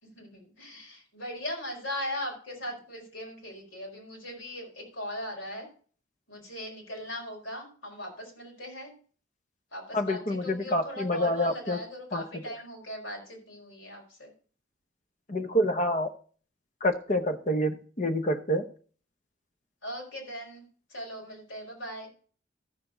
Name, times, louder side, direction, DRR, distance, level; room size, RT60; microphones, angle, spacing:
voice 1, 0.0-5.7 6.3-8.9 9.7-14.3 19.8-20.6 20.9-22.1, equal, 85° left, 0 dB, 4.8 m, -39 dB
voice 2, 9.9-11.8 12.1-12.2 15.3-16.1 16.8-18.6, equal, 40° left, 8 dB, 0.9 m, -27 dB
13.5 x 6.8 x 3.9 m, 0.42 s
head